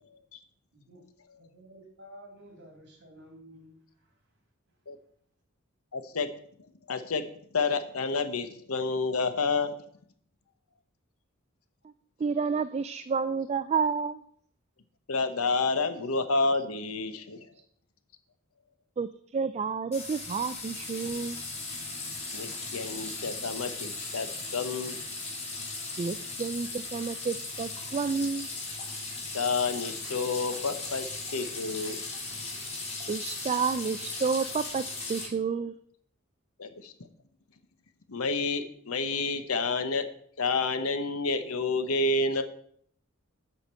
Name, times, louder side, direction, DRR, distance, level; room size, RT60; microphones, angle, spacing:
voice 1, 1.3-4.2 4.7-4.8, equal, 55° right, 1 dB, 3.4 m, -52 dB
voice 2, 5.9-6.3 6.9-7.2 7.5-9.7 15.1-17.5 22.3-25.0 29.3-31.1 31.3-32.0 36.6-36.9 38.1-40.0 40.4-42.4, left 3 dB, 85° left, 9 dB, 1.0 m, -29 dB
voice 3, 12.2-14.2 19.0-21.4 26.0-28.5 33.1-34.8 35.1-35.7, right 5 dB, 30° right, 12 dB, 0.3 m, -30 dB
sound 1, 19.9-35.3, left 3 dB, 30° left, 3.3 m, -37 dB
8.3 x 5.1 x 7.5 m, 0.62 s
head